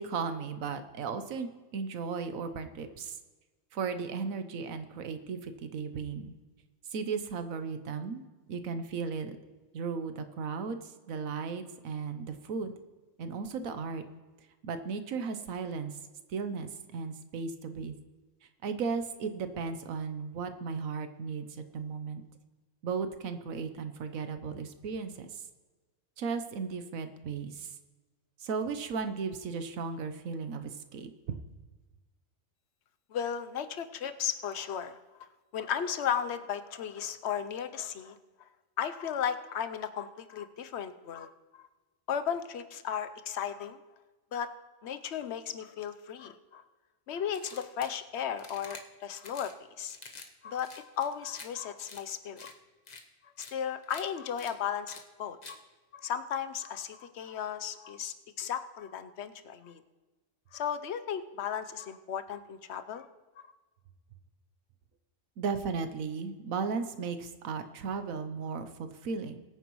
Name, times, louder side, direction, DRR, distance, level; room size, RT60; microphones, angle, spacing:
voice 1, 0.0-3.2 3.7-6.3 6.9-9.4 9.7-12.7 13.2-14.0 14.6-16.0 16.3-17.9 18.6-22.2 22.8-25.4 26.2-27.7 28.4-31.4 65.4-69.4, right 5 dB, 90° right, 9 dB, 1.3 m, -36 dB
voice 2, 33.1-35.0 35.5-38.2 38.8-41.3 42.1-43.8 44.3-44.5 44.8-46.6 47.1-49.5 49.8-50.0 50.4-50.7 51.0-52.6 53.4-55.4 55.9-59.8 60.5-63.1 63.4-63.5, left 8 dB, 60° left, 10 dB, 0.9 m, -35 dB
sound 1, 47.3-48.0 48.4-48.8 49.2-49.5 49.9-50.3 50.5-51.5 51.8-52.0 52.4-52.5 52.9-53.0 53.4-53.5 53.8-54.0 54.4-54.5 54.9-55.0 55.4-55.6, left 4 dB, 35° left, 1.0 m, -48 dB
21.5 x 9.2 x 3.1 m, 1.2 s
omnidirectional pair, 1.4 m